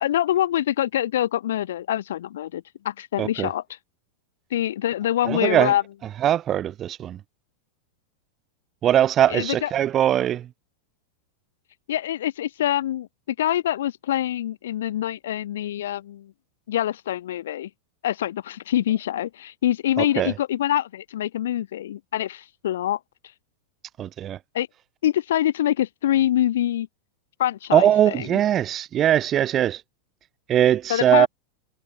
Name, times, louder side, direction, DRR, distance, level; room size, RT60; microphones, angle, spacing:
voice 1, 0.0-3.6 4.5-5.8 9.3-9.7 11.9-16.3 16.7-17.7 18.0-23.0 24.5-24.7 25.0-26.9 27.4-28.3 30.9-31.3, left 12 dB, 60° left, 1.6 m, -25 dB
voice 2, 3.2-3.5 5.2-5.7 6.2-7.2 8.8-10.5 20.0-20.3 24.0-24.4 27.7-29.8 30.5-31.3, right 11 dB, 30° right, 0.9 m, -21 dB
figure-of-eight pair, 90°, 0 cm